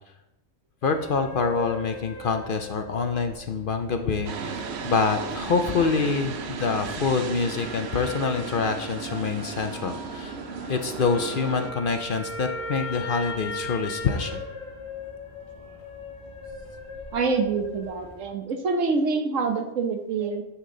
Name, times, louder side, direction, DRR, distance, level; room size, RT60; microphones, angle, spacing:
voice 1, 0.8-10.3 10.7-14.4, left 5 dB, 55° left, 7 dB, 0.7 m, -26 dB
sound 1, 0.8-18.2, left 2 dB, 35° left, 1.6 m, -39 dB
sound 2, 4.2-11.7, right 5 dB, 60° right, 0.9 m, -35 dB
voice 2, 17.1-20.4, right 4 dB, 80° right, 5 dB, 1.3 m, -26 dB
9.7 x 5.9 x 3.8 m, 0.91 s
omnidirectional pair, 1.3 m